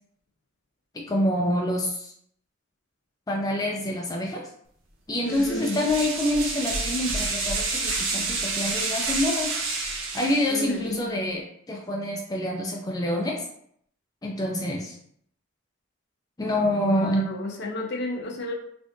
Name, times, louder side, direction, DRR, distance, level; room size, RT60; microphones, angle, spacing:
voice 1, 0.9-2.1 3.3-4.5 5.1-9.5 10.1-13.4 14.2-15.0 16.4-17.3, left 1 dB, 20° left, 0 dB, 0.4 m, -26 dB
voice 2, 5.2-5.7 10.5-11.0 16.7-18.5, left 3 dB, 55° left, 2 dB, 0.7 m, -32 dB
sound 1, 5.3-10.9, right 3 dB, 75° right, 0.8 m, -29 dB
3.5 x 3.4 x 2.6 m, 0.68 s
head